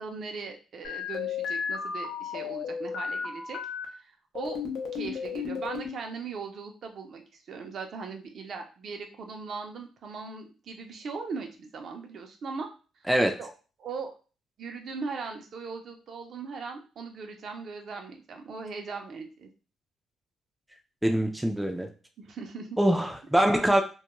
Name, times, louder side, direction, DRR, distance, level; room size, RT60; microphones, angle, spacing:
voice 1, 0.0-3.6 4.0-4.6 4.9-12.7 13.4-13.5 13.8-14.1 14.6-19.5 22.2-22.8, right 4 dB, 60° right, 4 dB, 0.5 m, -39 dB
sound 1, 0.8-3.8 4.3-5.9, left 6 dB, 80° left, 0.6 m, -34 dB
voice 2, 13.1-13.4 21.0-21.9 22.8-23.8, right 1 dB, 5° right, 3 dB, 0.4 m, -24 dB
2.3 x 2.1 x 2.9 m, 0.34 s
cardioid pair, 90°, 0 cm